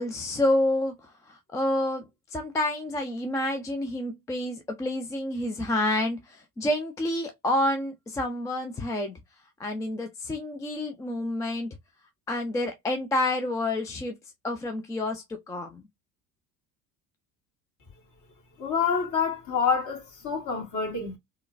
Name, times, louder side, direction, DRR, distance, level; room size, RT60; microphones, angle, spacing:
voice 1, 0.0-2.0 2.3-9.2 9.6-11.7 12.3-14.2 14.4-15.9, left 1 dB, 10° left, 0.3 m, -29 dB
voice 2, 18.6-21.2, left 6 dB, 40° left, 1.7 m, -27 dB
3.6 x 2.2 x 2.5 m
figure-of-eight pair, 60°, 47 cm